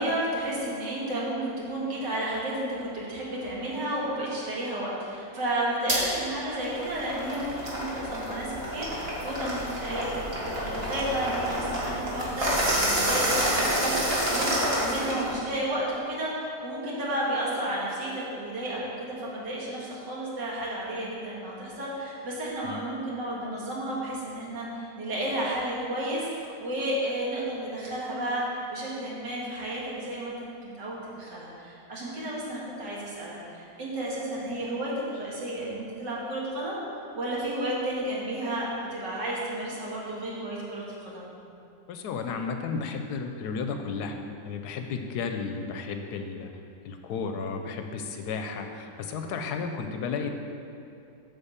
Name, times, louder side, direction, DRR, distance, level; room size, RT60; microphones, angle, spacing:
voice 1, 0.0-30.4 30.6-36.8 37.1-41.2, right 1 dB, 80° right, -5 dB, 2.4 m, -32 dB
sound 1, 5.9-6.0 6.5-15.3, right 1 dB, 35° right, 1.8 m, -28 dB
voice 2, 41.9-44.2 44.4-46.5 46.8-50.3, left 5 dB, 75° left, 5 dB, 1.1 m, -33 dB
8.9 x 4.0 x 7.2 m, 2.7 s
omnidirectional pair, 1.9 m